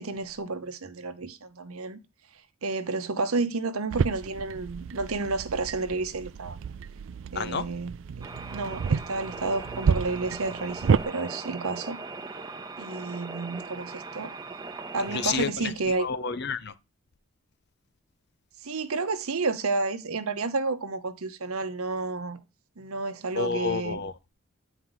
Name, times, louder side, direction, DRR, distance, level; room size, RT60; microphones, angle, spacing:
voice 1, 0.0-2.0 2.6-6.6 7.3-12.0 12.8-14.3 14.9-16.1 18.6-22.4 22.8-24.0, right 3 dB, 80° right, 0.9 m, -31 dB
sound 1, 3.9-11.0, right 6 dB, 60° right, 0.3 m, -30 dB
sound 2, 8.2-15.4, right 3 dB, 15° right, 0.7 m, -39 dB
voice 2, 15.1-16.7 23.4-24.3, left 5 dB, 50° left, 0.6 m, -30 dB
9.3 x 4.5 x 3.9 m
head